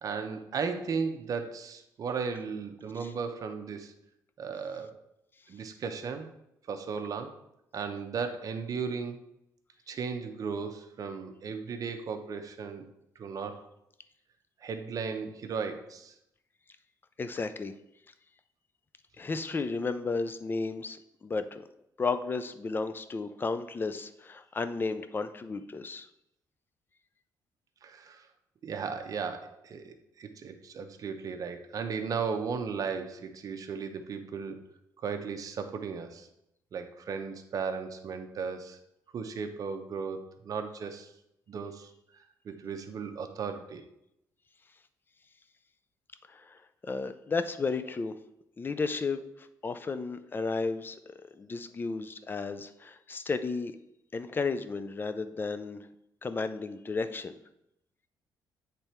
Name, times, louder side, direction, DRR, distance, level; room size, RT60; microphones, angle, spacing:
voice 1, 0.0-3.9 4.4-4.9 5.5-6.3 6.7-7.4 7.7-9.2 9.9-12.9 13.2-13.6 14.6-16.1 27.8-28.2 28.6-34.6 35.0-36.3 36.7-38.8 39.1-41.1 41.5-41.9 42.4-43.9, right 5 dB, 50° right, 7 dB, 0.7 m, -36 dB
voice 2, 17.2-17.7 19.2-21.6 22.0-26.1 46.3-46.6 46.8-48.1 48.6-51.0 51.3-53.7 54.1-55.9 56.2-57.4, left 4 dB, 30° left, 11 dB, 0.4 m, -33 dB
8.0 x 3.4 x 4.4 m, 0.81 s
cardioid pair, 105°, 7 cm